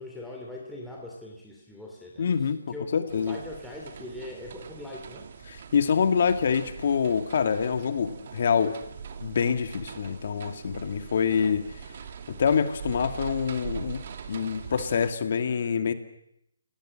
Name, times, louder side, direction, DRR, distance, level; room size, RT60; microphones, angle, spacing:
voice 1, 0.0-2.2 2.7-5.3, left 2 dB, ahead, -3 dB, 2.9 m, -41 dB
voice 2, 2.2-3.4 5.5-8.8 9.2-11.6 12.3-15.9, left 6 dB, 50° left, 9 dB, 2.3 m, -26 dB
sound 1, 3.1-15.1, right 6 dB, 45° right, 2.5 m, -42 dB
30.0 x 18.5 x 7.8 m, 0.77 s
hypercardioid pair, 160°, 0 cm